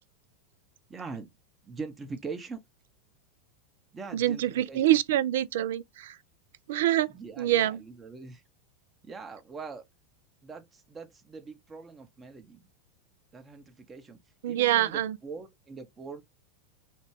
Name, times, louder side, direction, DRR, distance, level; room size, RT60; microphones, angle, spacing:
voice 1, 0.9-1.3 1.6-2.6 3.9-4.8 7.1-8.4 9.0-9.8 10.4-12.6 13.3-14.2 14.5-16.2, right 4 dB, 20° right, 0.7 m, -42 dB
voice 2, 4.1-6.2 6.7-7.1 7.4-7.8 14.4-15.2, right 13 dB, 60° right, 0.3 m, -25 dB
3.2 x 2.2 x 3.1 m
figure-of-eight pair, 85°, 0 cm